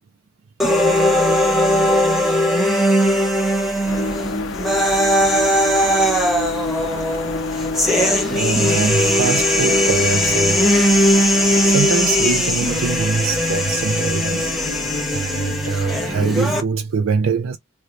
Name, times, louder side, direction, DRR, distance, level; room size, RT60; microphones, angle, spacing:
sound 1, 0.6-16.6, equal, ahead, 0.8 m, -19 dB
sound 2, 3.9-15.0, left 3 dB, 70° left, 0.5 m, -30 dB
voice 1, 8.3-10.7 11.2-11.3 11.6-14.6 15.1-17.6, right 5 dB, 75° right, 0.4 m, -23 dB
3.2 x 2.9 x 2.5 m
head